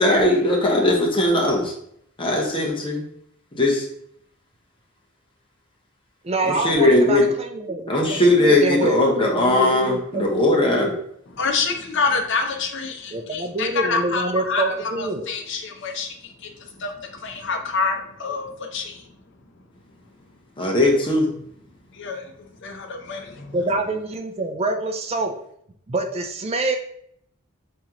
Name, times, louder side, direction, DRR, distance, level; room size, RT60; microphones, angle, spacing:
voice 1, 0.0-1.7 2.2-3.0 3.5-3.8 6.4-7.3 7.9-10.9 20.6-21.3, left 1 dB, 25° left, -1 dB, 0.9 m, -19 dB
voice 2, 6.2-9.0 9.4-11.0 13.1-15.3 23.5-25.3 25.9-26.8, right 2 dB, 30° right, 5 dB, 0.4 m, -26 dB
voice 3, 11.4-16.1 16.8-16.9 17.2-19.0 22.0-22.2 22.6-23.6, left 4 dB, 60° left, 4 dB, 0.7 m, -26 dB
4.2 x 3.7 x 2.9 m, 0.70 s
head